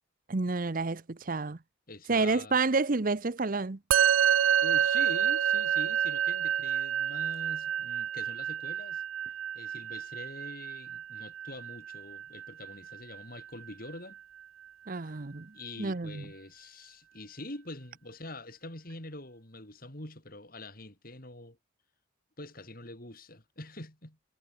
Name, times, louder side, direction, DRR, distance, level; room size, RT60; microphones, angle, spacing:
voice 1, 0.3-1.6 2.1-3.8 14.9-15.5 15.8-16.2, right 3 dB, 45° right, 0.8 m, -29 dB
voice 2, 1.9-2.6 4.6-9.0 9.5-14.2 15.5-21.6 22.4-24.2, left 1 dB, 45° left, 5.0 m, -45 dB
Musical instrument, 3.9-13.4, right 9 dB, 80° right, 0.5 m, -29 dB
head